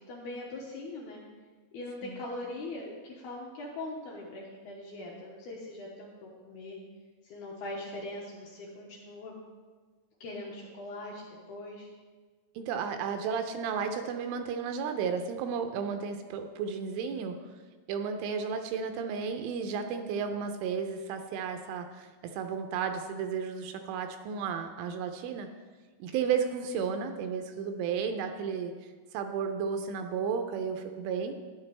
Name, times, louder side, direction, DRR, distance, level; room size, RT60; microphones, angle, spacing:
voice 1, 0.1-1.2 1.7-6.8 7.2-9.4 10.2-11.9, left 2 dB, 70° left, -3 dB, 2.5 m, -41 dB
voice 2, 12.6-17.4 17.9-25.5 26.0-28.7 29.1-31.3, right 6 dB, 80° right, 6 dB, 2.9 m, -33 dB
13.0 x 10.0 x 3.4 m, 1.4 s
omnidirectional pair, 5.8 m